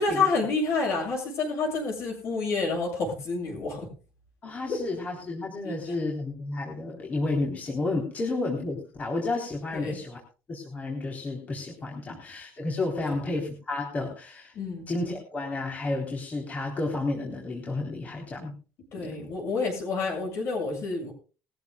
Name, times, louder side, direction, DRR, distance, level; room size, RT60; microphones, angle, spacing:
voice 1, 0.0-3.9 4.7-4.8 5.6-5.9 9.7-10.0 13.0-13.2 14.6-14.9 18.9-21.1, left 4 dB, 60° left, 2 dB, 7.1 m, -29 dB
voice 2, 4.4-10.2 10.5-14.5 14.9-18.5 19.0-19.2, left 2 dB, 30° left, -1 dB, 3.7 m, -31 dB
21.0 x 14.5 x 2.4 m, 0.34 s
cardioid pair, 140°, 5 cm